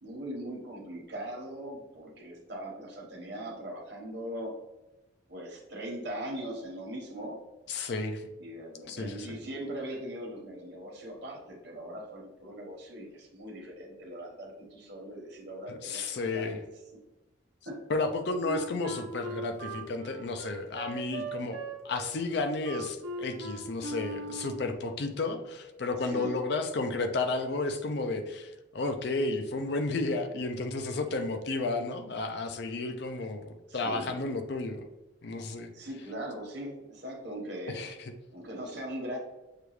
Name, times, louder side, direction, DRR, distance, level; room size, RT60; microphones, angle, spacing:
voice 1, 0.0-4.5 5.3-7.4 8.4-16.6 17.7-17.9 26.0-26.3 33.7-34.2 35.7-37.8 38.3-39.2, right 1 dB, 55° right, 0 dB, 1.1 m, -40 dB
voice 2, 7.7-8.3 8.9-9.3 15.7-16.6 17.9-34.8 35.2-35.7 37.7-38.1, left 3 dB, 55° left, 7 dB, 0.4 m, -32 dB
Wind instrument woodwind instrument, 18.4-24.7, right 2 dB, 75° right, 0.7 m, -39 dB
6.7 x 2.3 x 3.1 m, 1.0 s
head